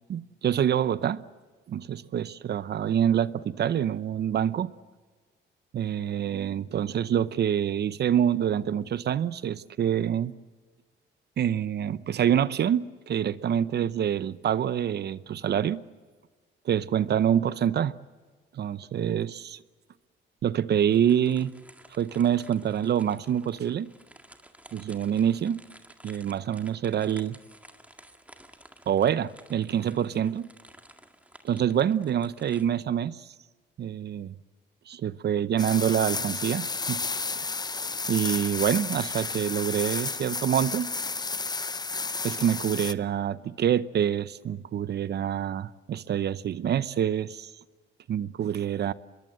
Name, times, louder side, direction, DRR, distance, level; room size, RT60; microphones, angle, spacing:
voice 1, 0.1-1.2 1.7-4.7 5.7-10.3 11.4-15.8 16.6-18.0 18.5-19.6 20.4-21.5 21.9-23.9 24.7-25.6 26.0-27.4 28.9-30.5 31.4-33.3 33.8-34.3 34.9-37.0 37.3-37.5 38.1-40.9 42.2-47.5 48.1-48.9, right 9 dB, 55° right, 0.8 m, -26 dB
sound 1, 20.9-32.7, right 1 dB, 5° right, 2.0 m, -53 dB
sound 2, 35.6-42.9, left 4 dB, 20° left, 0.7 m, -32 dB
24.0 x 22.0 x 7.7 m
cardioid pair, 90°, 20 cm